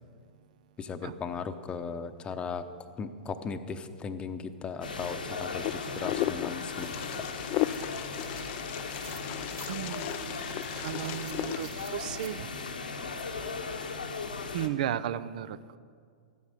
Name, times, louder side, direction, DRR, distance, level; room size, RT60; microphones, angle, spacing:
voice 1, 0.8-2.6 3.0-5.6 5.9-7.2, left 5 dB, 20° left, 9 dB, 0.8 m, -37 dB
sound 1, 4.8-14.7, left 4 dB, 85° left, 1.2 m, -37 dB
Wind, 5.6-11.7, left 15 dB, 40° left, 0.4 m, -35 dB
sound 2, 6.0-12.3, right 6 dB, 40° right, 1.9 m, -53 dB
voice 2, 9.7-12.5 14.5-15.6, right 11 dB, 60° right, 16 dB, 0.6 m, -35 dB
13.5 x 9.5 x 6.6 m, 2.1 s
hypercardioid pair, 105°, 5 cm